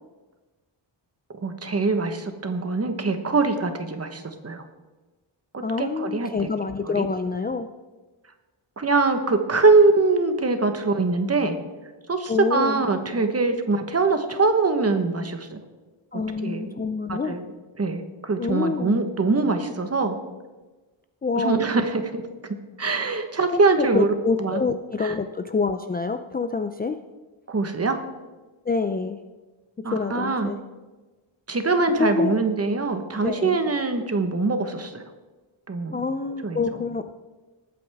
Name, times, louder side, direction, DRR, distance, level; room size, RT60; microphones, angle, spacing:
voice 1, 1.4-4.6 5.5-6.5 6.9-7.1 8.8-11.6 12.1-15.6 16.4-16.8 17.1-17.5 17.8-20.2 21.3-22.2 22.8-24.1 24.4-24.6 25.0-25.1 27.5-28.0 29.8-30.5 31.5-35.0 35.7-36.0 36.4-36.6, right 3 dB, 30° right, 7 dB, 1.2 m, -23 dB
voice 2, 5.6-7.7 12.3-12.8 16.1-17.4 18.4-19.0 21.2-21.8 23.5-27.0 28.7-29.2 29.9-30.6 32.0-32.4 33.2-33.6 35.9-37.2, left 4 dB, 20° left, 8 dB, 0.4 m, -26 dB
19.5 x 8.7 x 3.5 m, 1.2 s
wide cardioid pair, 145°, 47 cm